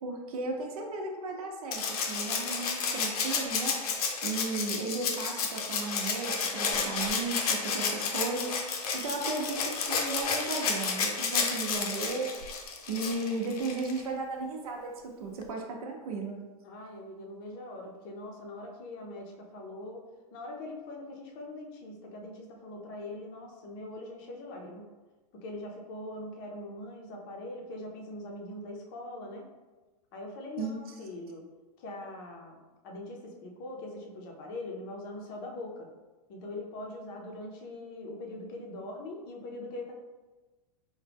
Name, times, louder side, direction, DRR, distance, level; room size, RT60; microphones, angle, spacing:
voice 1, 0.0-12.3 12.9-14.9 15.2-16.4 30.6-30.9, right 3 dB, 65° right, 0 dB, 0.7 m, -35 dB
Rattle (instrument), 1.7-14.0 15.4-15.5, left 5 dB, 70° left, 0.7 m, -31 dB
voice 2, 16.6-20.1 20.3-24.9 25.3-29.5 30.1-31.5 31.8-35.9 36.3-39.9, left 2 dB, 35° left, 1 dB, 0.6 m, -42 dB
4.8 x 2.1 x 3.4 m, 1.2 s
supercardioid pair, 170°, 20 cm